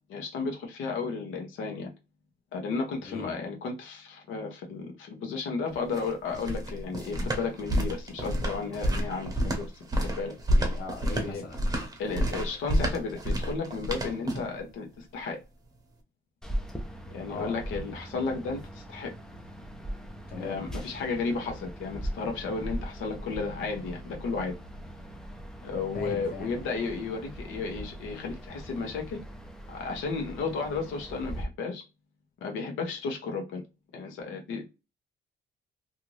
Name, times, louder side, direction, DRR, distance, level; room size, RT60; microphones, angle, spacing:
voice 1, 0.1-1.9 2.5-9.7 10.2-10.3 11.1-11.4 12.0-15.4 17.1-19.1 20.4-24.5 25.6-29.2 29.7-31.8 32.4-33.6 33.9-34.7, left 4 dB, 85° left, 0.9 m, -33 dB
sound 1, 5.7-14.6, equal, 20° right, 0.8 m, -29 dB
voice 2, 10.6-11.6 17.3-17.6 20.3-20.7 25.9-26.6, left 3 dB, 50° left, 0.8 m, -39 dB
sound 2, 16.4-31.4, equal, 5° left, 0.3 m, -40 dB
2.6 x 2.5 x 3.0 m
cardioid pair, 155°, 20 cm